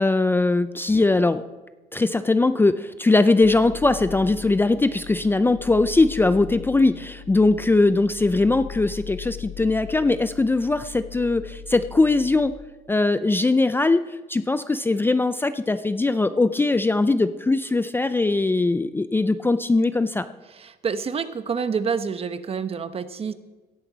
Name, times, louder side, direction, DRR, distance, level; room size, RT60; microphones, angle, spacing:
voice 1, 0.0-1.4 1.9-12.5 12.9-20.3, left 3 dB, 10° left, 11 dB, 0.5 m, -20 dB
sound 1, 3.4-12.5, left 9 dB, 40° left, 1.8 m, -40 dB
voice 2, 20.5-23.3, right 6 dB, 35° right, 11 dB, 1.0 m, -28 dB
16.5 x 14.5 x 4.0 m, 1.2 s
cardioid pair, 110°, 17 cm